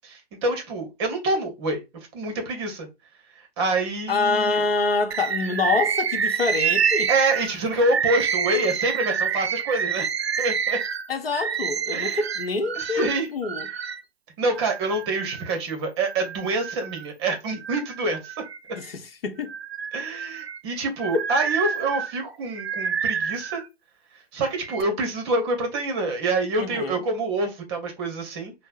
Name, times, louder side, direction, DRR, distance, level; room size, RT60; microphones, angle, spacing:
voice 1, 0.0-1.8 2.1-2.9 3.6-4.6 7.1-10.1 10.4-10.8 11.9-12.2 12.7-13.3 14.4-18.3 19.9-23.6 24.3-28.5, right 2 dB, 25° right, 0.9 m, -26 dB
voice 2, 4.1-7.1 11.1-13.7 18.7-19.5 21.1-21.2 26.6-27.0, left 4 dB, 65° left, 0.8 m, -26 dB
Bird, 5.1-14.0 14.6-15.5 16.1-17.1 17.5-18.9 19.4-23.7 24.4-24.8, right 7 dB, 85° right, 0.5 m, -28 dB
5.4 x 2.1 x 2.4 m
figure-of-eight pair, 130°, 31 cm